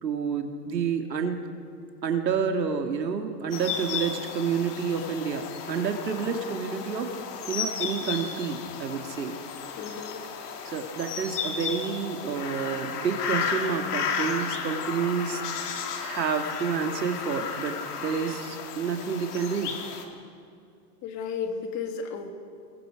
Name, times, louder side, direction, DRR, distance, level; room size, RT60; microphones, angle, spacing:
voice 1, 0.0-1.4 2.0-7.1 7.5-9.4 10.6-15.4 16.0-19.7, right 6 dB, 90° right, 5 dB, 2.4 m, -29 dB
sound 1, 3.5-20.0, left 6 dB, 70° left, 3.1 m, -34 dB
voice 2, 9.8-10.2 21.0-22.3, left 5 dB, 35° left, 5 dB, 2.5 m, -33 dB
28.0 x 21.5 x 5.1 m, 2.4 s
hypercardioid pair, 125°, 49 cm